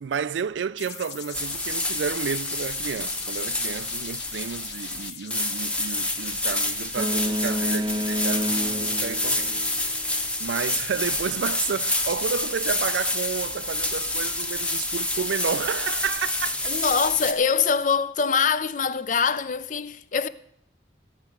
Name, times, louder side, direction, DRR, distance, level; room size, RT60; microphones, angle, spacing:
voice 1, 0.0-9.6 10.4-16.6, right 6 dB, 85° right, 0.4 m, -31 dB
sound 1, 0.8-9.3, left 8 dB, 75° left, 1.2 m, -42 dB
sound 2, 1.3-17.3, left 2 dB, 5° left, 0.8 m, -28 dB
Boat Water vehicle, 7.0-10.1, equal, 25° right, 0.5 m, -29 dB
voice 2, 16.7-20.3, left 6 dB, 45° left, 0.5 m, -24 dB
15.5 x 5.9 x 9.0 m
head